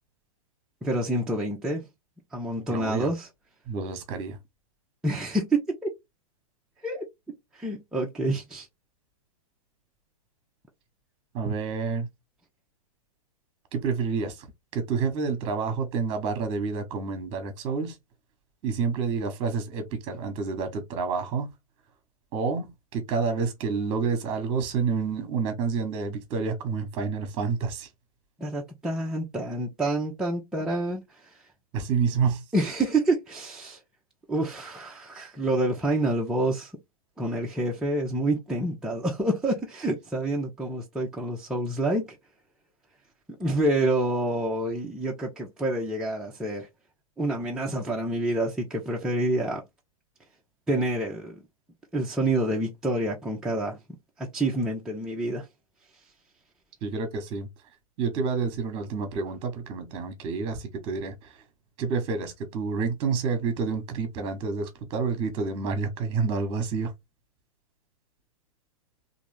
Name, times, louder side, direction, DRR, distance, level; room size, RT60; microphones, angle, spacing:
voice 1, 0.8-1.8 2.3-3.3 5.0-5.9 6.8-7.0 7.6-8.7 28.4-31.0 32.5-33.8 34.3-36.7 37.2-42.1 43.4-46.7 47.2-49.6 50.7-51.4 51.9-53.8 54.2-55.4, right 1 dB, 5° right, 0.6 m, -27 dB
voice 2, 2.7-3.1 3.7-4.4 11.3-12.1 13.7-14.5 14.7-18.0 18.6-21.5 22.3-27.9 31.7-32.4 56.8-57.5 58.0-61.4 61.8-66.9, right 5 dB, 30° right, 1.1 m, -29 dB
3.5 x 2.7 x 3.3 m
figure-of-eight pair, 110°, 19 cm